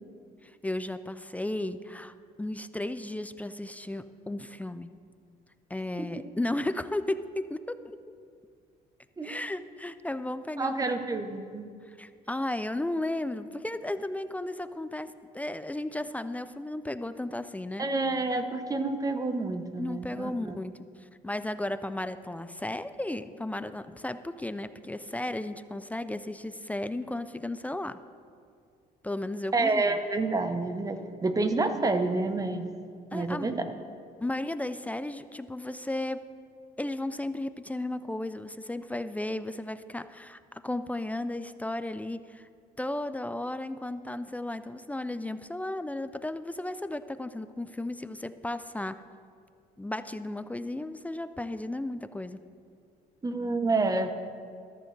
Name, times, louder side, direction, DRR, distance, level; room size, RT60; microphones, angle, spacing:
voice 1, 0.4-4.9 5.7-8.0 9.2-10.8 11.9-17.9 19.8-20.7 21.0-28.0 29.0-29.9 33.1-33.5 34.2-36.2 36.8-42.5 42.8-49.0 49.8-52.4, left 1 dB, 10° left, 12 dB, 0.3 m, -34 dB
voice 2, 10.6-11.7 17.8-20.6 29.5-32.7 33.1-33.6 53.2-54.1, right 3 dB, 20° right, 8 dB, 0.9 m, -28 dB
14.0 x 13.0 x 3.3 m, 2.3 s
cardioid pair, 110°, 17 cm